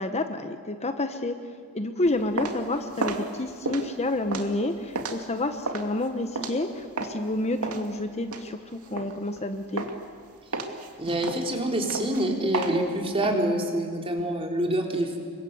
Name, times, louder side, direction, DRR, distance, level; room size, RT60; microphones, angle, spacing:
voice 1, 0.0-1.3 1.7-9.8, left 2 dB, 30° left, 7 dB, 1.1 m, -29 dB
sound 1, 2.0-7.3 7.6-9.4 9.8-10.2 10.5-13.3, right 3 dB, 75° right, 2.5 m, -33 dB
voice 2, 11.0-15.2, right 1 dB, 25° right, 1 dB, 3.7 m, -26 dB
28.0 x 24.0 x 8.1 m, 2.1 s
head